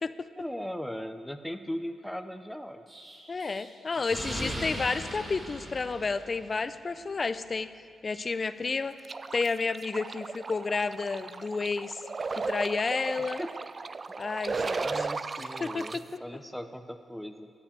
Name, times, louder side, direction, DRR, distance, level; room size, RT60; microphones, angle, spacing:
voice 1, 0.4-2.8 4.2-4.7 13.2-13.5 14.8-17.5, equal, 5° left, 8 dB, 0.8 m, -38 dB
Explosion, 2.9-6.7, equal, 20° right, 4.6 m, -39 dB
voice 2, 3.3-7.7 8.0-9.0 9.3-12.0 12.3-13.4 14.2-15.1 15.4-16.0, left 4 dB, 40° left, 13 dB, 0.6 m, -31 dB
sound 1, 9.0-16.0, right 4 dB, 40° right, 0.4 m, -35 dB
14.0 x 8.6 x 7.5 m, 2.2 s
supercardioid pair, 50°, 0 cm